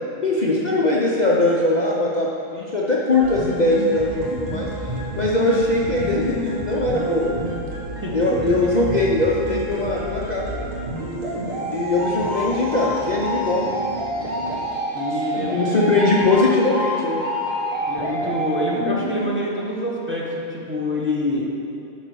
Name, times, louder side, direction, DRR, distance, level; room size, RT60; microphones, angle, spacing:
voice 1, 0.2-7.5 8.1-10.7 11.7-13.7 15.5-17.2, left 2 dB, 40° left, -5 dB, 0.8 m, -21 dB
sound 1, 3.2-19.2, equal, 85° right, 2.1 m, -28 dB
sound 2, 4.4-14.8, right 4 dB, 50° right, 0.3 m, -37 dB
voice 2, 14.9-15.6 17.8-21.5, left 1 dB, 10° right, -5 dB, 1.1 m, -26 dB
11.0 x 4.1 x 6.2 m, 2.8 s
omnidirectional pair, 1.4 m